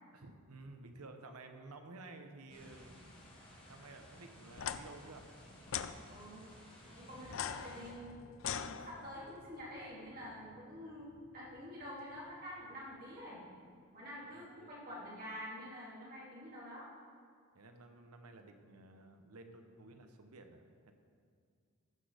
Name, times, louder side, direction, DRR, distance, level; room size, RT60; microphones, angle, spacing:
voice 1, 0.1-3.0 3.7-5.3 14.2-14.7 17.5-20.9, right 2 dB, 85° right, 6 dB, 0.9 m, -53 dB
sound 1, 2.5-7.9, left 1 dB, 25° left, 1.9 m, -56 dB
sound 2, 4.5-4.8 5.7-5.9 7.3-9.3, left 8 dB, 60° left, 0.4 m, -40 dB
voice 2, 6.1-6.5 6.8-8.3 8.6-13.4 13.9-16.9, equal, 40° right, -7 dB, 3.1 m, -48 dB
sound 3, 7.1-15.9, left 1 dB, 40° left, 1.0 m, -63 dB
14.0 x 6.3 x 5.0 m, 2.2 s
head